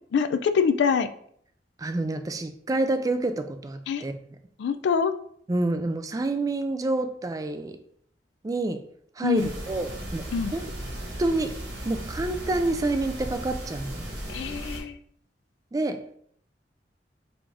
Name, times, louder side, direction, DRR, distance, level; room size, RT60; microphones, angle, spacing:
voice 1, 0.1-1.1 3.9-4.0 4.6-5.1 9.2-9.5 10.3-10.5 14.3-14.9, left 6 dB, 75° left, 10 dB, 0.3 m, -24 dB
voice 2, 1.8-4.2 5.5-7.7 8.4-8.8 9.2-10.3 10.5-10.6 11.2-11.5 11.8-14.0 15.7-16.2, right 2 dB, 20° right, 8 dB, 0.3 m, -28 dB
sound 1, 9.3-14.8, right 1 dB, 70° right, 1.1 m, -36 dB
4.9 x 2.5 x 3.5 m, 0.64 s
head